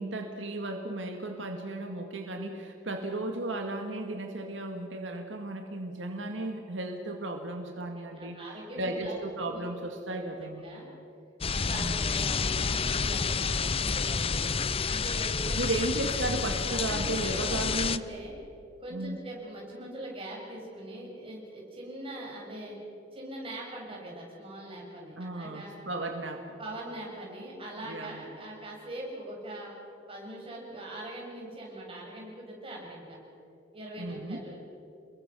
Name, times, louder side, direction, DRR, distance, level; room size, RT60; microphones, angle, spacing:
voice 1, 0.0-10.6 11.7-12.0 15.6-18.0 18.9-19.2 25.2-26.5 27.8-28.2 34.0-34.4, right 2 dB, 85° right, 3 dB, 2.0 m, -35 dB
voice 2, 8.1-9.2 9.5-9.6 9.9-10.2 10.5-10.9 11.5-14.5 14.8-15.6 16.7-18.3 18.8-22.8 23.1-25.7 26.6-29.7 30.1-33.2 33.7-34.6, right 1 dB, 30° right, -3 dB, 7.4 m, -42 dB
sound 1, 11.4-18.0, left 5 dB, 30° left, 0.6 m, -29 dB
29.5 x 21.5 x 6.3 m, 2.7 s
head